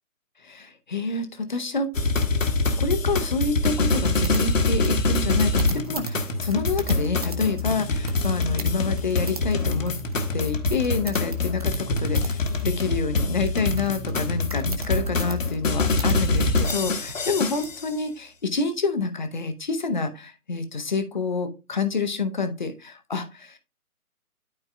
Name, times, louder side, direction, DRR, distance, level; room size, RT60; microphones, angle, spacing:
voice 1, 0.4-1.9 2.8-9.9 10.3-23.6, left 4 dB, 30° left, 8 dB, 0.7 m, -28 dB
sound 1, 1.9-17.9, left 3 dB, 60° left, 1.3 m, -25 dB
sound 2, 3.9-17.7, right 2 dB, 25° right, 0.7 m, -40 dB
12.0 x 4.5 x 2.3 m, 0.30 s
figure-of-eight pair, 145°, 45 cm